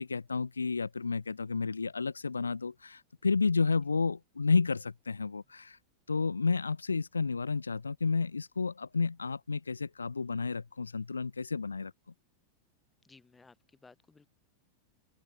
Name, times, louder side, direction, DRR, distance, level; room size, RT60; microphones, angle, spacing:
voice 1, 0.0-5.8 6.1-11.9, left 4 dB, 75° left, 0.3 m, -31 dB
voice 2, 13.0-14.3, left 4 dB, 10° left, 5.3 m, -59 dB
open air
figure-of-eight pair, 90°, 0 cm